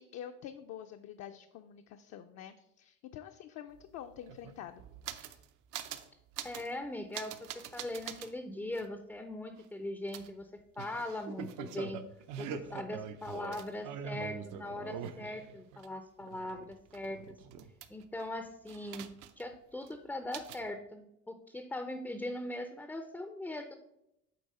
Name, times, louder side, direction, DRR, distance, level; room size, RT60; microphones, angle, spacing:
voice 1, 0.0-4.8 5.3-5.4, left 10 dB, 60° left, 6 dB, 0.5 m, -47 dB
sound 1, 3.7-3.8 4.0-5.4 5.7-6.1 6.3-6.7 7.1-8.3 8.7-8.9 10.1-15.9 16.2-18.2 18.7-19.5 19.8-19.9 20.3-20.7, right 8 dB, 75° right, 0.7 m, -43 dB
voice 2, 6.4-12.0 12.4-17.4 17.9-19.1 19.4-23.8, left 1 dB, 5° left, 7 dB, 0.4 m, -40 dB
8.6 x 3.4 x 5.4 m, 0.83 s
cardioid pair, 135°, 31 cm